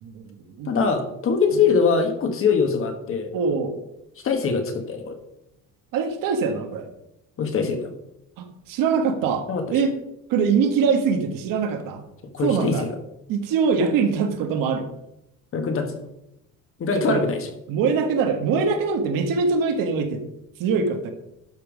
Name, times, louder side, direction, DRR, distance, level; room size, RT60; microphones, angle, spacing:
voice 1, 0.0-0.7 1.5-1.6 3.3-3.7 5.9-6.9 8.4-9.9 10.3-12.1 12.4-12.9 13.3-14.9 16.9-17.3 17.7-20.2 20.6-21.1, right 5 dB, 70° right, 6 dB, 1.6 m, -23 dB
voice 2, 0.6-3.3 4.2-5.2 7.4-7.9 9.5-9.6 12.3-12.9 15.5-16.0 16.8-17.4, left 5 dB, 40° left, 6 dB, 1.4 m, -22 dB
11.5 x 5.5 x 5.0 m, 0.85 s
cardioid pair, 160°, 35 cm